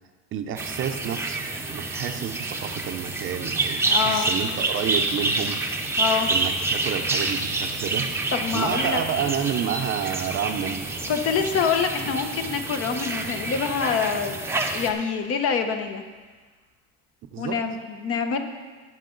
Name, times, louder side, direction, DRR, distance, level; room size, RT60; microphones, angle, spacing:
voice 1, 0.3-1.4 1.7-5.6 6.2-8.1 8.5-10.9 17.3-17.5, right 9 dB, 40° right, 7 dB, 0.6 m, -29 dB
sound 1, 0.6-14.9, right 2 dB, 10° right, 0.7 m, -28 dB
voice 2, 3.8-4.3 6.0-6.3 8.3-9.3 11.1-14.4 14.7-16.0 17.4-18.4, left 6 dB, 50° left, 6 dB, 1.0 m, -26 dB
sound 2, 4.6-16.3, left 5 dB, 75° left, 1.5 m, -50 dB
17.0 x 6.4 x 3.9 m, 1.4 s
cardioid pair, 150°, 30 cm